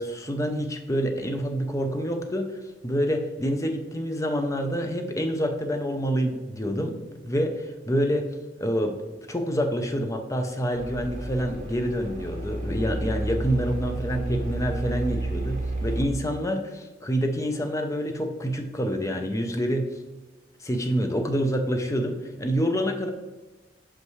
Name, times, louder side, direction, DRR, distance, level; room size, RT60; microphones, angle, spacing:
voice 1, 0.0-8.3 8.6-8.9 9.3-20.0 20.6-23.1, equal, 15° left, 5 dB, 0.5 m, -27 dB
sound 1, 10.7-16.1, right 2 dB, 45° right, 1.2 m, -31 dB
5.9 x 5.4 x 3.1 m, 1.1 s
head